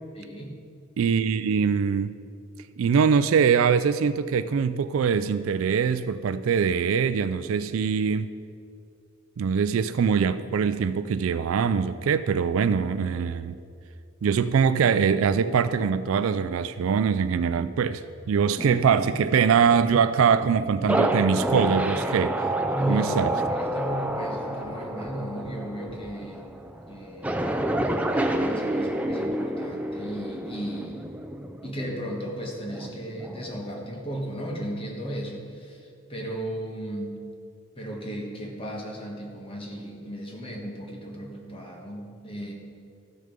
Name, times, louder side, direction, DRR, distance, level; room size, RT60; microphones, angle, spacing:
voice 1, 0.1-0.5 22.7-26.5 26.9-27.6 28.1-31.1 31.6-37.2 37.8-42.5, right 1 dB, 25° left, 0 dB, 1.4 m, -35 dB
voice 2, 1.0-2.2 2.8-8.3 9.4-13.6 14.2-22.4 22.9-23.3, right 6 dB, 75° right, 13 dB, 0.3 m, -23 dB
sound 1, 18.6-34.4 34.8-35.5, right 1 dB, 5° right, 0.4 m, -30 dB
13.5 x 6.6 x 5.1 m, 2.4 s
head